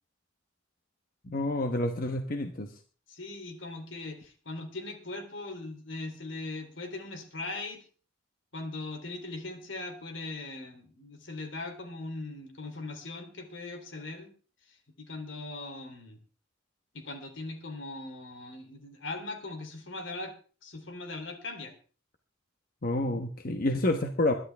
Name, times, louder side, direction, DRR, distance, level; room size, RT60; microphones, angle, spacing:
voice 1, 1.2-2.7 22.8-24.3, left 1 dB, 50° left, 5 dB, 1.1 m, -29 dB
voice 2, 3.1-7.8 8.5-14.3 14.7-16.2 16.9-20.3 20.6-21.7, left 2 dB, 80° left, 5 dB, 3.3 m, -40 dB
22.0 x 11.0 x 3.5 m, 0.40 s
head